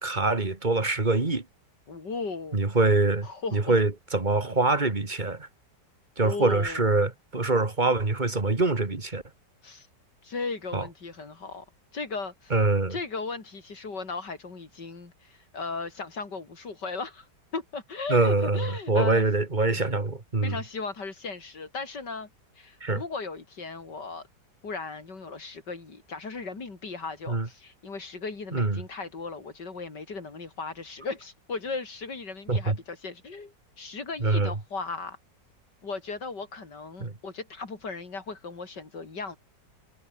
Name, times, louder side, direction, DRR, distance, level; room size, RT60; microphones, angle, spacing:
voice 1, 0.0-1.4 2.5-5.5 6.2-9.2 10.7-10.9 12.5-13.0 18.1-20.6 22.8-23.0 27.3-27.5 28.5-28.8 32.5-32.8 34.2-34.5 37.0-37.1, right 3 dB, 25° right, 2.2 m, -24 dB
voice 2, 1.9-2.6 3.2-3.8 6.2-6.9 9.6-9.9 10.2-11.7 11.9-12.5 12.9-17.3 17.5-19.3 19.7-19.9 20.4-22.3 22.6-24.3 24.6-35.2 35.8-39.4, left 4 dB, 75° left, 4.3 m, -36 dB
omnidirectional pair, 1.9 m